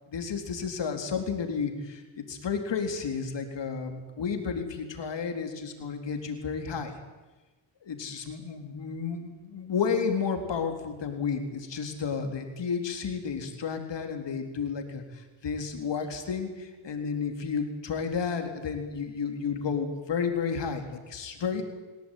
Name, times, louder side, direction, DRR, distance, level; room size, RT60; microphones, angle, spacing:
voice 1, 0.1-6.9 7.9-21.6, left 6 dB, 70° left, 5 dB, 4.1 m, -32 dB
28.5 x 17.5 x 9.4 m, 1.2 s
cardioid pair, 105°, 45 cm